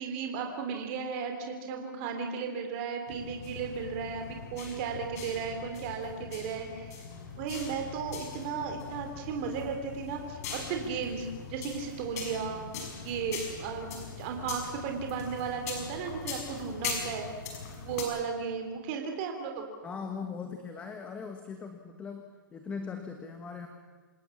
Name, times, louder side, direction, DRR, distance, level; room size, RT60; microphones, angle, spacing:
voice 1, 0.0-7.0 7.4-12.6 13.0-17.3 17.8-19.7, right 6 dB, 35° right, 4 dB, 3.5 m, -35 dB
sound 1, 3.1-18.0, left 5 dB, 45° left, 5.7 m, -41 dB
voice 2, 19.8-23.7, left 5 dB, 10° left, 6 dB, 1.5 m, -40 dB
27.0 x 18.5 x 7.3 m, 1.5 s
hypercardioid pair, 160°, 11 cm